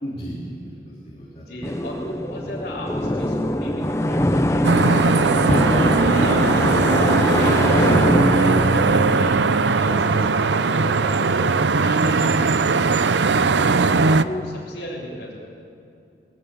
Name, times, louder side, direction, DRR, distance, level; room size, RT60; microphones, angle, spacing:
voice 1, 0.0-1.7, equal, 35° left, -4 dB, 2.9 m, -36 dB
voice 2, 1.4-5.3 6.0-9.4 9.7-12.8 13.6-15.4, left 1 dB, 50° left, -8 dB, 3.8 m, -35 dB
sound 1, 1.6-10.4, left 1 dB, 15° left, 0.7 m, -22 dB
sound 2, 4.6-14.2, right 4 dB, 85° right, 0.6 m, -19 dB
20.5 x 17.0 x 8.7 m, 2.5 s
head